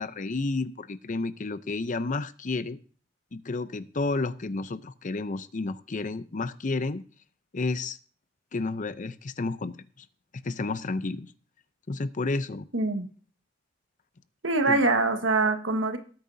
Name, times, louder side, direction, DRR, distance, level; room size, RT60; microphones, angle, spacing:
voice 1, 0.0-2.8 3.3-7.0 7.5-8.0 8.5-9.8 10.4-11.3 11.9-12.7 14.7-14.8, left 3 dB, 40° left, 14 dB, 0.6 m, -31 dB
voice 2, 12.7-13.1 14.4-16.0, right 3 dB, 70° right, 6 dB, 1.5 m, -24 dB
19.0 x 8.9 x 2.7 m, 0.40 s
head